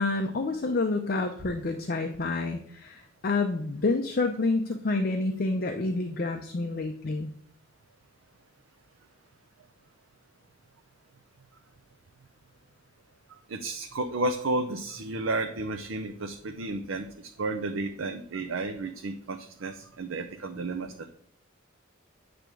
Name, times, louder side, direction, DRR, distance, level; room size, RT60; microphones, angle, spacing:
voice 1, 0.0-7.3, left 3 dB, 50° left, 5 dB, 0.5 m, -28 dB
voice 2, 13.5-17.1 17.4-21.1, right 2 dB, 85° right, 5 dB, 0.6 m, -32 dB
8.9 x 3.4 x 6.1 m, 0.63 s
head